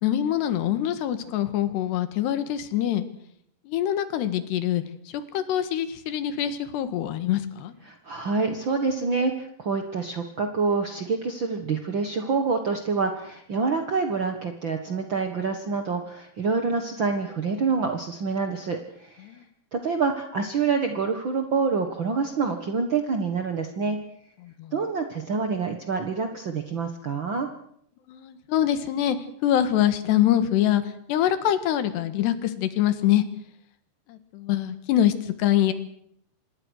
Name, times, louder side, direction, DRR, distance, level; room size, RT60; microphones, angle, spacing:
voice 1, 0.0-3.1 3.7-7.7 19.2-19.5 24.4-24.7 28.1-29.2 29.4-33.3 34.1-35.7, left 11 dB, 80° left, 11 dB, 3.7 m, -24 dB
voice 2, 7.9-19.3 19.7-24.0 24.7-27.5, right 4 dB, 70° right, 5 dB, 1.1 m, -27 dB
26.5 x 20.5 x 6.4 m, 0.70 s
omnidirectional pair, 4.8 m